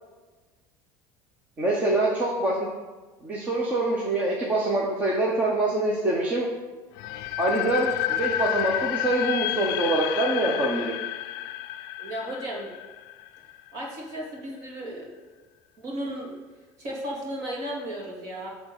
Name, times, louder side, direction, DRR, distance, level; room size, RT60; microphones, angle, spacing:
voice 1, 1.6-2.7 3.2-6.5 7.4-10.9, right 2 dB, 20° right, -3 dB, 1.0 m, -25 dB
sound 1, 7.0-13.8, left 14 dB, 60° left, 0.4 m, -30 dB
voice 2, 12.0-12.7 13.7-15.1 15.8-16.4 16.8-18.5, right 1 dB, 40° right, -2 dB, 2.5 m, -34 dB
10.5 x 3.7 x 7.4 m, 1.3 s
cardioid pair, 175°, 8 cm